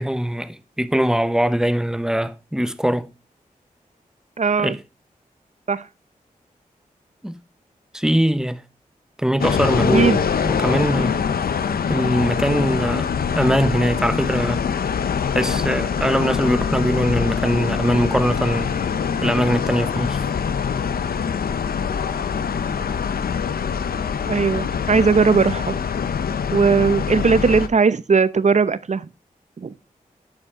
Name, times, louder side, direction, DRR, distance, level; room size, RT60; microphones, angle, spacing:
voice 1, 0.0-3.1 4.6-4.8 7.2-7.4 7.9-8.6 9.2-11.2 11.9-13.1 13.4-14.6 15.3-18.8 19.2-20.2, equal, 5° right, 0.9 m, -21 dB
voice 2, 4.4-4.8 5.7-5.9 9.9-10.2 24.3-25.8 26.5-29.1 29.6-29.7, right 5 dB, 50° right, 0.8 m, -18 dB
sound 1, 9.4-27.7, left 7 dB, 80° left, 0.8 m, -24 dB
10.5 x 6.9 x 3.8 m
cardioid pair, 40°, 15 cm